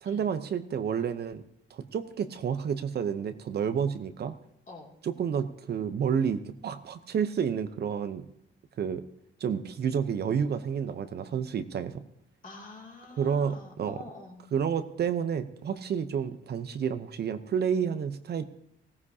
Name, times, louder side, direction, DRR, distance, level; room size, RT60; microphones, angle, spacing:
voice 1, 0.0-1.4 1.7-4.3 5.0-8.3 8.8-9.0 9.4-12.0 13.2-14.0 14.5-18.4, right 7 dB, 55° right, 10 dB, 0.8 m, -30 dB
voice 2, 12.4-14.5, left 3 dB, 40° left, 0 dB, 2.6 m, -46 dB
16.5 x 14.5 x 2.8 m, 0.76 s
cardioid pair, 90°, 20 cm